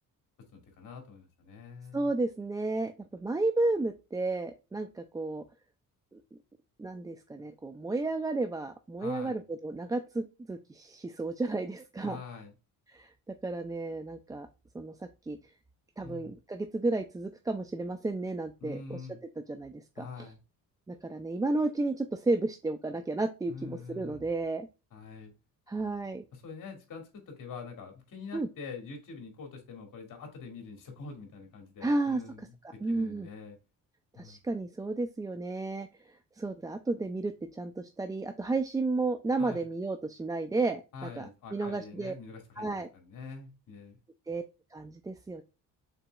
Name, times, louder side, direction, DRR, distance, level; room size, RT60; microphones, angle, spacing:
voice 1, 0.5-2.1 9.0-9.4 12.0-12.5 16.0-16.3 18.6-19.2 20.0-20.4 23.5-24.2 24.9-25.3 26.3-32.6 32.9-33.6 34.2-34.4 39.4-39.6 40.9-42.7 42.9-44.0, left 5 dB, 60° left, 3 dB, 1.9 m, -45 dB
voice 2, 1.9-5.4 6.1-6.2 6.8-12.2 12.9-14.5 14.7-15.4 16.0-19.0 19.5-20.1 20.9-24.7 25.7-26.2 28.3-28.5 31.8-32.2 32.8-33.3 34.2-42.1 42.6-42.9 44.3-44.4 44.7-45.4, right 2 dB, 10° right, 7 dB, 0.3 m, -32 dB
5.6 x 4.0 x 2.3 m, 0.29 s
cardioid pair, 85°, 35 cm